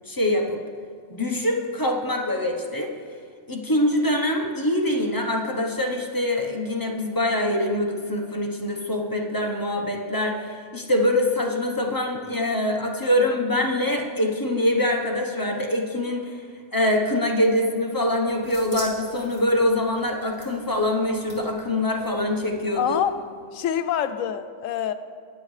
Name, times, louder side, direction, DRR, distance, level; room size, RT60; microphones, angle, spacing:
voice 1, 0.1-0.6 1.1-2.9 3.5-10.4 10.7-16.3 16.7-23.0, left 1 dB, 20° left, 1 dB, 0.8 m, -24 dB
sound 1, 17.9-23.1, equal, 35° right, 2.3 m, -45 dB
voice 2, 22.8-23.1 23.5-24.9, left 9 dB, 80° left, 11 dB, 1.0 m, -25 dB
20.0 x 7.8 x 3.2 m, 2.1 s
omnidirectional pair, 1.3 m